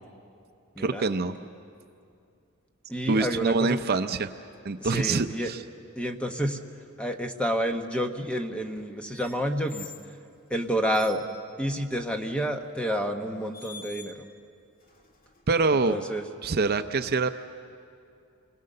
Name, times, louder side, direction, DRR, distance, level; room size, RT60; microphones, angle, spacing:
voice 1, 0.8-1.4 3.1-4.3 4.6-5.6 15.5-16.0 16.4-17.3, right 3 dB, 45° right, 9 dB, 0.6 m, -25 dB
voice 2, 2.9-3.8 4.8-5.5 6.0-6.6 7.0-9.9 10.5-11.2 11.6-14.2 15.9-16.2, equal, 5° left, 5 dB, 1.1 m, -29 dB
sound 1, 9.1-10.1 10.7-11.3 12.6-12.8 13.5-14.4 14.8-15.7, left 4 dB, 40° left, 1.8 m, -47 dB
29.5 x 21.5 x 6.7 m, 2.4 s
head